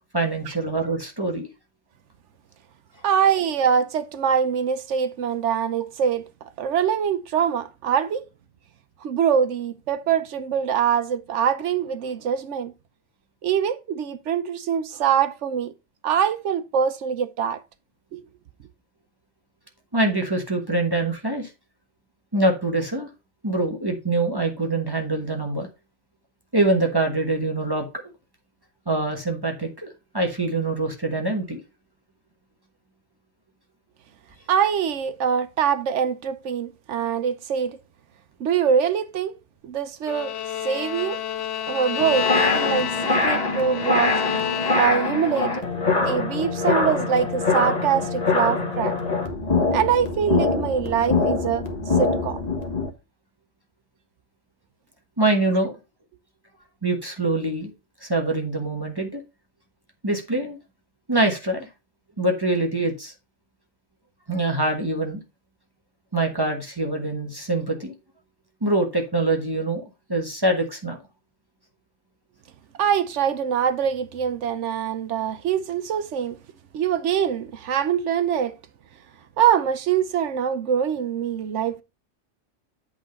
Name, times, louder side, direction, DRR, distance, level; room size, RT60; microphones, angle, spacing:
voice 1, 0.1-1.5 19.9-21.5 22.3-23.1 23.4-25.7 26.5-27.9 28.9-29.9 30.1-31.6 55.2-55.7 56.8-57.7 58.0-59.2 60.0-60.6 61.1-61.7 62.2-63.1 64.3-65.2 66.1-67.9 68.6-69.8 70.1-71.0, right 2 dB, 20° right, 1.3 m, -24 dB
voice 2, 3.0-6.3 6.6-8.2 9.0-12.7 13.4-15.7 16.0-17.6 18.1-18.2 34.5-37.8 38.4-39.3 39.6-40.3 40.6-41.2 41.7-44.2 44.7-45.7 45.9-48.9 49.7-51.7 52.0-52.4 72.8-76.4 76.7-78.6 79.4-81.8, right 8 dB, 80° right, 1.0 m, -23 dB
Bowed string instrument, 40.1-45.2, left 10 dB, 90° left, 0.9 m, -29 dB
sound 1, 42.0-52.9, left 3 dB, 35° left, 1.4 m, -24 dB
8.2 x 3.9 x 5.2 m
omnidirectional pair, 1.2 m